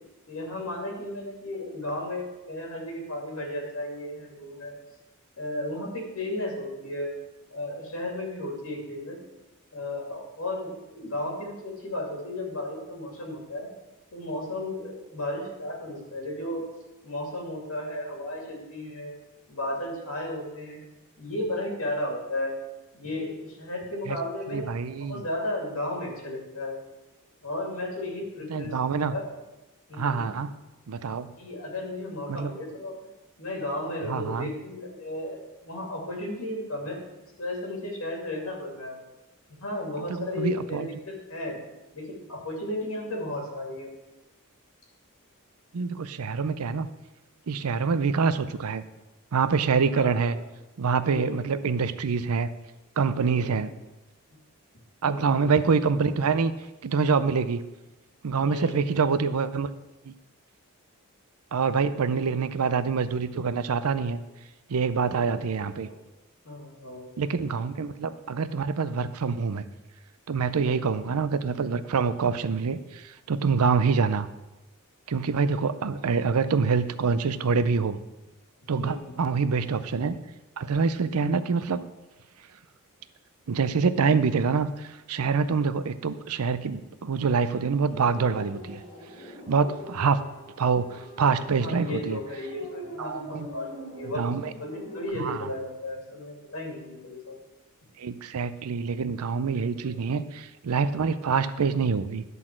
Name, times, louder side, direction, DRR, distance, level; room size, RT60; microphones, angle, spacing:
voice 1, 0.3-4.8 5.4-7.1 7.5-9.2 9.7-13.7 14.1-16.6 17.0-19.2 19.5-20.8 21.2-22.5 22.9-24.7 25.0-26.8 27.4-29.3 29.9-30.3 31.4-33.0 33.4-37.0 37.4-39.0 39.6-41.6 41.9-43.9 49.9-50.4 51.1-51.6 53.3-53.8 55.0-55.5 58.5-58.8 62.1-62.3 65.2-66.0 66.4-67.1 70.7-71.1 76.0-76.6 78.8-79.2 91.6-94.3 94.6-97.4 99.7-100.0, left 1 dB, 70° left, 0 dB, 2.6 m, -34 dB
voice 2, 24.5-25.2 28.5-29.1 30.0-30.5 30.9-31.3 32.3-32.5 34.1-34.5 40.1-40.9 45.7-46.9 47.5-48.8 49.3-50.4 50.8-52.5 53.0-53.7 55.0-56.5 56.8-57.6 58.2-59.7 60.1-60.2 61.5-64.2 64.7-65.9 67.2-69.6 70.3-74.3 75.1-78.0 78.7-80.2 80.6-81.8 83.5-88.8 89.5-90.2 90.6-92.2 93.0-93.5 94.1-94.5 95.2-95.5 98.0-102.2, right 5 dB, 80° right, 13 dB, 0.5 m, -26 dB
sound 1, 87.6-95.1, left 1 dB, 30° left, 3.2 m, -43 dB
11.0 x 4.1 x 7.4 m, 1.0 s
head